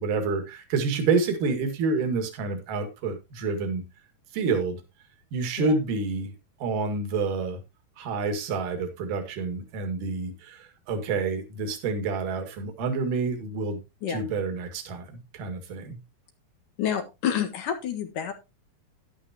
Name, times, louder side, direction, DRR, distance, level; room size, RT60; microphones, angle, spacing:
voice 1, 0.0-3.8 4.3-4.8 5.3-6.3 6.6-7.6 8.0-13.8 14.1-15.1 15.3-16.0, right 4 dB, 60° right, 6 dB, 3.5 m, -28 dB
voice 2, 16.8-18.3, left 9 dB, 60° left, 6 dB, 2.8 m, -28 dB
11.5 x 11.5 x 2.8 m, 0.25 s
omnidirectional pair, 4.5 m